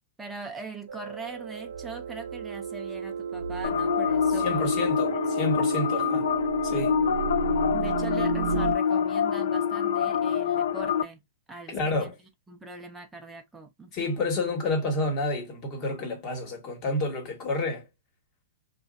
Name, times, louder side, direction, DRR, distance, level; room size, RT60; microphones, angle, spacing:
voice 1, 0.2-4.7 5.9-6.0 6.7-6.9 7.7-11.2 11.5-12.1 12.5-14.2, right 3 dB, 5° right, 0.5 m, -41 dB
sound 1, 0.9-8.8, right 8 dB, 90° right, 0.6 m, -33 dB
sound 2, 3.6-11.0, left 8 dB, 75° left, 0.4 m, -26 dB
voice 2, 4.4-6.3 6.6-7.0 11.7-12.1 13.9-17.9, left 2 dB, 35° left, 1.4 m, -29 dB
3.0 x 2.5 x 2.5 m
hypercardioid pair, 150°, 0 cm